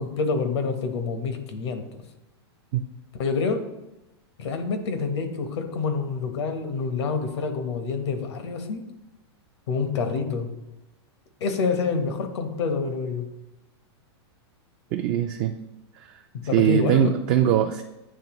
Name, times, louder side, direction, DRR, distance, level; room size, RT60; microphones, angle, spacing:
voice 1, 0.0-1.9 3.2-3.6 4.4-8.8 9.7-10.5 11.4-13.3 16.3-17.1, left 4 dB, 75° left, 7 dB, 1.0 m, -27 dB
voice 2, 14.9-15.6 16.0-16.1 16.5-17.8, right 10 dB, 40° right, 4 dB, 0.4 m, -21 dB
9.6 x 3.4 x 3.0 m, 0.97 s
supercardioid pair, 145°, 14 cm